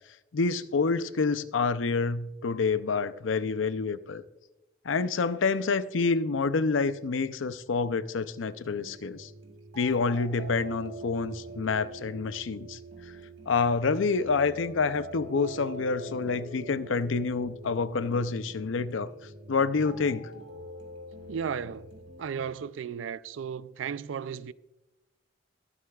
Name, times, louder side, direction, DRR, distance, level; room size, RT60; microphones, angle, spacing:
voice 1, 0.3-4.2 4.8-9.3 9.7-12.8 13.5-19.1 19.5-20.3, left 4 dB, 90° left, 0.5 m, -28 dB
sound 1, 8.5-22.5, right 2 dB, 65° right, 1.6 m, -44 dB
voice 2, 21.3-21.9 22.2-24.5, right 7 dB, 80° right, 0.4 m, -34 dB
22.0 x 8.0 x 2.3 m
head